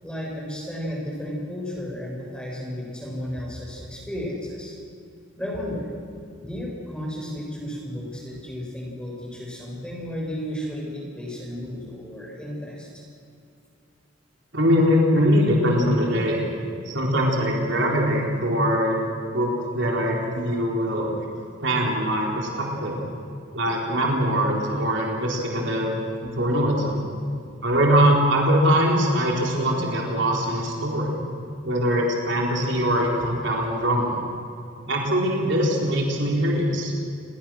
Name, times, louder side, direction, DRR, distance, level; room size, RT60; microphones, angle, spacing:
voice 1, 0.0-4.8 5.4-5.9 6.4-13.0, equal, 5° left, -2 dB, 6.5 m, -33 dB
voice 2, 14.5-16.4 16.9-19.0 19.3-21.3 21.6-23.0 23.5-27.0 27.6-31.2 31.6-34.2 34.9-36.9, equal, 60° right, -1 dB, 4.3 m, -22 dB
29.0 x 22.0 x 6.4 m, 2.5 s
head